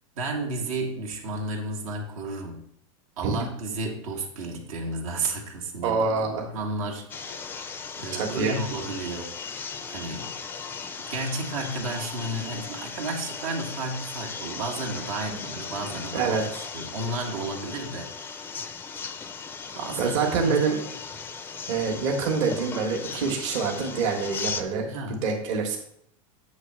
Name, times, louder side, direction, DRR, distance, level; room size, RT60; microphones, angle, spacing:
voice 1, 0.2-2.6 3.2-9.3 9.9-10.3 11.1-16.4 16.7-18.5 19.7-20.6 24.9-25.3, right 2 dB, 85° right, -1 dB, 1.5 m, -32 dB
voice 2, 5.8-6.5 8.1-8.5 16.1-16.6 20.0-20.8 21.7-24.9 25.2-25.8, right 5 dB, 60° right, 1 dB, 1.4 m, -26 dB
sound 1, 7.1-24.6, left 5 dB, 10° left, 0.3 m, -37 dB
8.0 x 3.2 x 6.0 m, 0.70 s
supercardioid pair, 145°, 17 cm